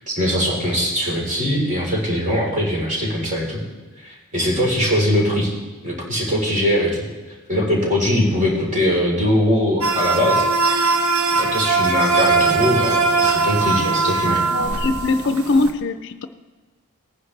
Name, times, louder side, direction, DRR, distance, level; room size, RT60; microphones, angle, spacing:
voice 1, 0.0-3.6 4.0-5.5 5.8-7.0 7.5-10.5 11.3-14.4, equal, 35° right, -3 dB, 3.8 m, -21 dB
sound 1, 9.8-15.7, right 3 dB, 85° right, 1.1 m, -20 dB
voice 2, 14.5-16.3, left 3 dB, 55° left, 10 dB, 0.5 m, -21 dB
18.5 x 10.0 x 3.3 m, 1.3 s
head